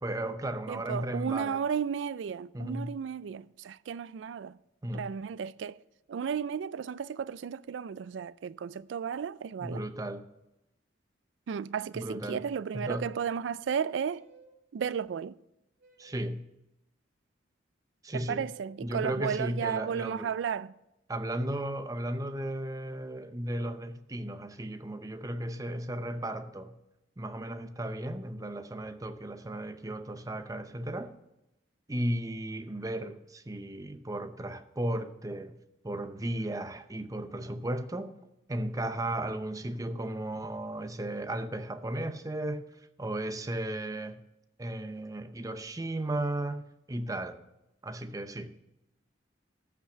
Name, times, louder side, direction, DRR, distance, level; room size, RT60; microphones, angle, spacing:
voice 1, 0.0-1.6 2.5-3.0 4.8-5.1 9.6-10.2 11.9-12.5 12.7-13.1 16.0-16.4 18.0-18.5 18.8-20.3 21.1-26.8 27.2-31.1 31.9-35.6 35.8-38.2 38.5-42.7 43.0-44.2 44.6-47.4 47.8-48.5, right 1 dB, 20° right, 0.6 m, -35 dB
voice 2, 0.7-4.6 4.9-5.8 6.1-9.8 11.5-14.3 14.7-15.4 18.1-20.7, right 7 dB, 80° right, 0.3 m, -34 dB
sound 1, 13.6-14.6 15.8-16.4 18.1-18.7 19.6-20.2, right 3 dB, 60° right, 2.5 m, -58 dB
13.5 x 5.9 x 6.5 m
head